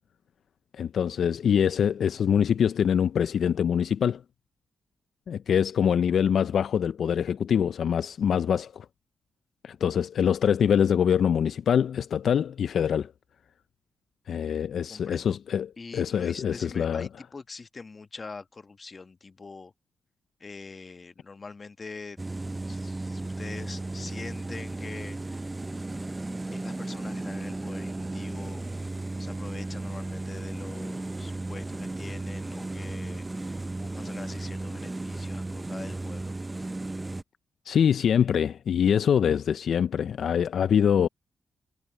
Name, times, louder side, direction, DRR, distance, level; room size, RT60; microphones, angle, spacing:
voice 1, 0.8-4.2 5.3-8.9 9.6-13.1 14.3-17.1 37.7-41.1, left 8 dB, 75° left, 0.5 m, -24 dB
voice 2, 14.9-15.4 15.8-19.7 20.4-22.2 22.7-25.5 26.5-28.6 29.2-36.4, left 4 dB, 45° left, 1.2 m, -44 dB
sound 1, 22.2-37.2, right 2 dB, 25° right, 0.5 m, -35 dB
supercardioid pair, 50°, 0 cm